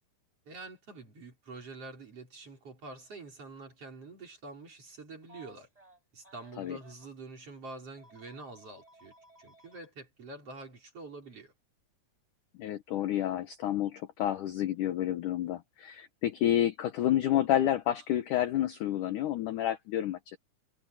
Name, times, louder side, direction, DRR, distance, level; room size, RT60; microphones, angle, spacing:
voice 1, 0.5-5.7 6.1-11.5, right 3 dB, 35° right, 5.5 m, -46 dB
Telephone, 5.2-7.1 8.0-9.9 11.2-11.4 12.9-13.1, right 1 dB, 10° right, 4.9 m, -58 dB
voice 2, 12.6-20.4, left 12 dB, 70° left, 2.0 m, -29 dB
omnidirectional pair, 4.8 m